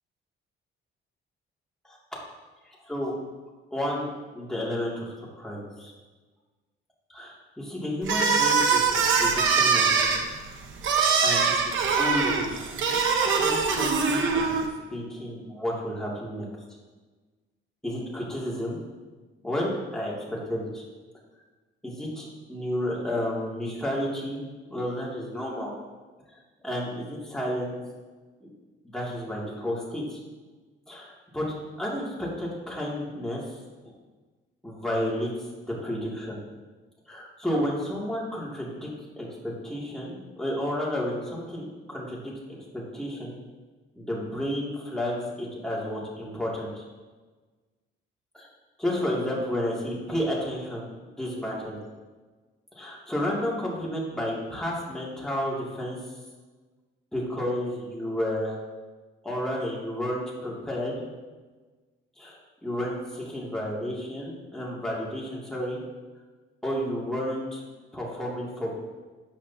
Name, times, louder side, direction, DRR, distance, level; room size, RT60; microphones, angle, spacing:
voice 1, 2.7-3.1 3.7-5.9 7.1-10.1 10.8-12.5 13.2-14.5 14.9-16.5 17.8-18.8 19.4-20.8 21.8-24.4 24.7-25.7 26.6-27.8 28.8-30.2 30.9-31.5 31.8-33.5 34.6-35.3 35.7-36.4 37.1-38.9 39.2-42.3 42.7-43.3 44.0-46.8 48.3-48.5 48.8-51.8 52.8-56.0 57.1-58.6 59.2-61.0 62.2-65.8 66.6-67.6 67.9-68.7, left 1 dB, ahead, -5 dB, 2.5 m, -31 dB
sound 1, 8.0-14.7, right 5 dB, 70° right, 1.2 m, -23 dB
13.5 x 8.3 x 2.9 m, 1.3 s
cardioid pair, 140°, 21 cm